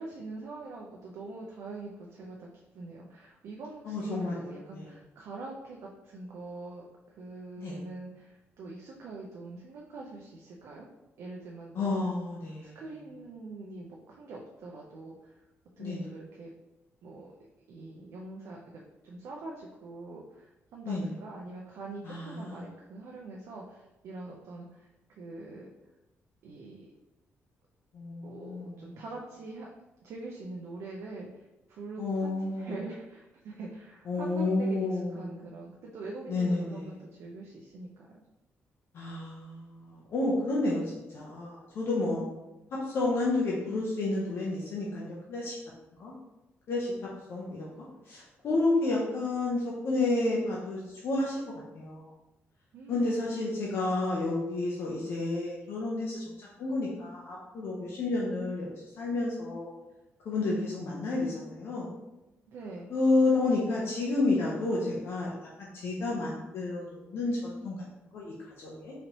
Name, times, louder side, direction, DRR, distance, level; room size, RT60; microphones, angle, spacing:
voice 1, 0.0-10.9 11.2-11.9 12.6-15.4 15.8-16.5 17.0-17.3 17.7-25.7 26.4-26.9 28.2-29.7 30.0-31.4 31.7-38.1 52.7-53.3 62.5-63.0, right 2 dB, 70° right, -1 dB, 0.5 m, -44 dB
voice 2, 3.8-4.9 7.6-7.8 11.7-12.8 15.8-16.1 20.9-21.1 22.0-22.6 27.9-28.9 32.0-32.7 34.1-35.4 36.3-36.9 38.9-42.3 42.7-45.6 46.0-46.1 46.7-46.9 47.3-51.4 51.7-52.1 52.9-59.7 60.2-61.9 62.9-65.3 65.6-67.8 68.1-68.9, left 2 dB, 55° left, -4 dB, 0.7 m, -30 dB
4.0 x 3.1 x 2.9 m, 0.99 s
wide cardioid pair, 175°, 5 cm